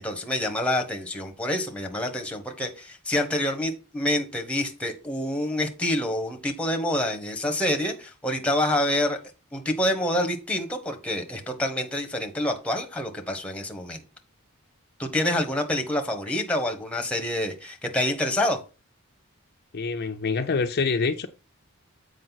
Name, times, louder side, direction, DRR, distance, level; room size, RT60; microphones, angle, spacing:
voice 1, 0.0-9.2 9.5-14.0 15.0-18.6, left 1 dB, 5° left, 1.1 m, -27 dB
voice 2, 19.7-21.3, left 4 dB, 45° left, 0.5 m, -26 dB
7.6 x 4.9 x 4.0 m
head